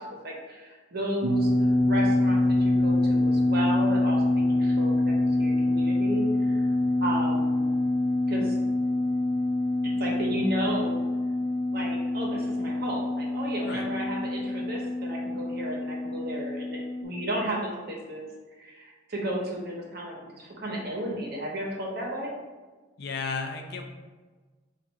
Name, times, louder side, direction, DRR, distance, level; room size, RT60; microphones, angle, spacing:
voice 1, 0.0-1.5 1.9-6.7 7.0-7.7 8.3-8.6 9.8-11.0 11.7-18.3 18.6-22.3, right 1 dB, 55° right, -1 dB, 0.9 m, -33 dB
sound 1, 1.2-17.0, left 2 dB, 85° right, 0.6 m, -25 dB
voice 2, 23.0-23.8, left 4 dB, 55° left, 4 dB, 0.5 m, -33 dB
4.6 x 2.5 x 4.1 m, 1.3 s
head